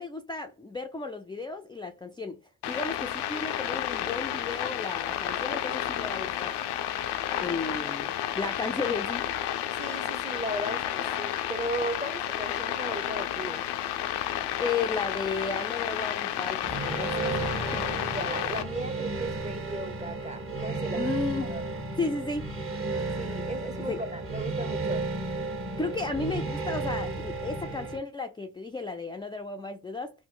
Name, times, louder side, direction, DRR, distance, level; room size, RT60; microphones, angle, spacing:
voice 1, 0.0-2.4 2.7-6.5 7.4-8.1 8.3-9.2 14.6-17.5 17.7-17.9 20.9-21.5 22.0-22.5 23.8-24.0 25.8-30.1, left 3 dB, 10° left, 0.4 m, -34 dB
sound 1, 2.6-18.6, left 11 dB, 75° left, 0.5 m, -31 dB
voice 2, 9.7-13.6 18.1-21.1 21.5-21.7 23.2-25.0, right 2 dB, 15° right, 0.8 m, -36 dB
sound 2, 16.6-28.0, right 3 dB, 35° right, 1.1 m, -33 dB
3.0 x 2.1 x 3.7 m
supercardioid pair, 40°, 40 cm